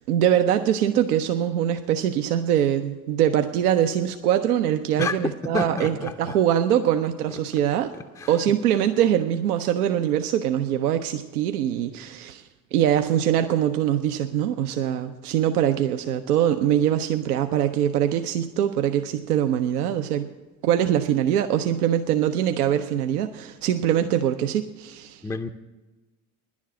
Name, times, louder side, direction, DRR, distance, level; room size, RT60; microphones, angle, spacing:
voice 1, 0.1-7.9 8.3-20.3 20.6-25.2, right 10 dB, 80° right, 0.6 m, -23 dB
voice 2, 5.5-6.3 8.2-8.3 25.2-25.5, left 3 dB, 10° left, 0.5 m, -29 dB
10.5 x 7.3 x 9.2 m
figure-of-eight pair, 55°, 45 cm